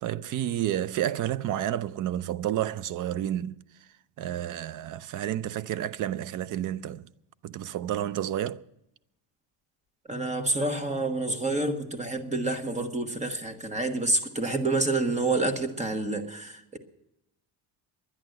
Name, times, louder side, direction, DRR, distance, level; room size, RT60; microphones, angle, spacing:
voice 1, 0.0-3.6 4.2-7.1 7.4-8.6, right 11 dB, 45° right, 0.5 m, -30 dB
voice 2, 10.1-16.8, right 2 dB, 15° right, 1.2 m, -28 dB
11.0 x 10.5 x 7.7 m
cardioid pair, 150°, 44 cm